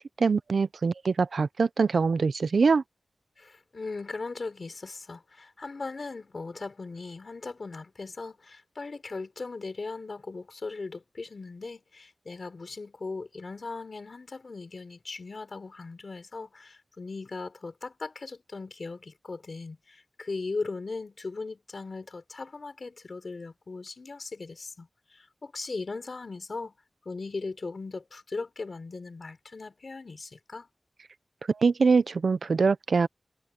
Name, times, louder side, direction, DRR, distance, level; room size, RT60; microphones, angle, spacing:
voice 1, 0.0-2.8 31.5-33.1, right 4 dB, 75° right, 0.7 m, -24 dB
voice 2, 3.4-26.7 27.1-30.7, left 3 dB, 55° left, 3.8 m, -38 dB
wide cardioid pair, 90°, 0 cm